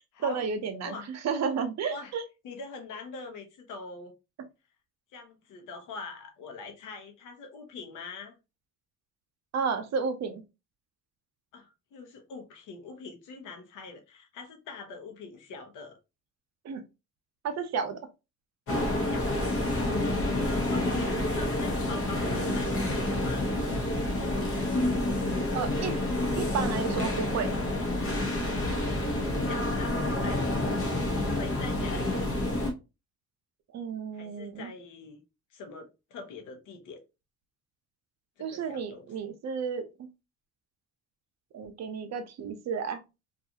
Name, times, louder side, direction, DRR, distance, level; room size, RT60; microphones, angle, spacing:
voice 1, 0.2-0.9 1.2-2.2 9.5-10.4 16.6-16.8 17.4-18.0 25.5-25.9 26.4-27.5 33.7-34.7 38.4-40.1 41.5-43.0, right 5 dB, 60° right, 0.6 m, -32 dB
voice 2, 2.4-4.1 5.1-8.4 11.5-16.0 18.9-21.1 21.3-23.5 28.8-29.0 29.4-30.8 31.2-32.1 34.1-35.2 35.5-37.0 38.4-39.1, left 4 dB, 85° left, 0.8 m, -44 dB
sound 1, 18.7-32.7, left 1 dB, 45° left, 0.8 m, -28 dB
2.6 x 2.4 x 2.7 m
cardioid pair, 90°, 30 cm